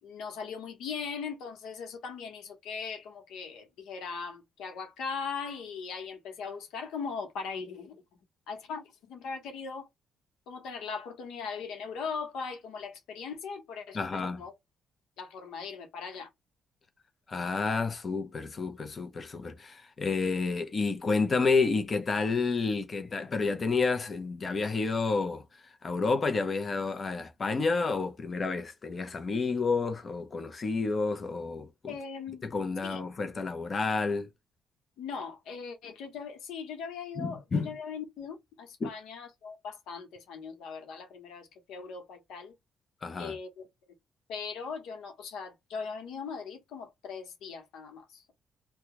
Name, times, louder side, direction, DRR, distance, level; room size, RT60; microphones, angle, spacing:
voice 1, 0.0-8.0 8.5-9.9 10.5-14.5 15.2-16.3 31.9-32.4 32.8-33.0 35.0-42.5 43.2-43.7 44.3-48.3, left 5 dB, 85° left, 1.0 m, -39 dB
voice 2, 13.9-14.4 17.3-25.4 25.8-31.9 32.4-34.3 37.2-37.7 38.8-38.9 43.0-43.3, left 4 dB, 35° left, 0.7 m, -30 dB
2.8 x 2.3 x 3.6 m
cardioid pair, 90°, 0 cm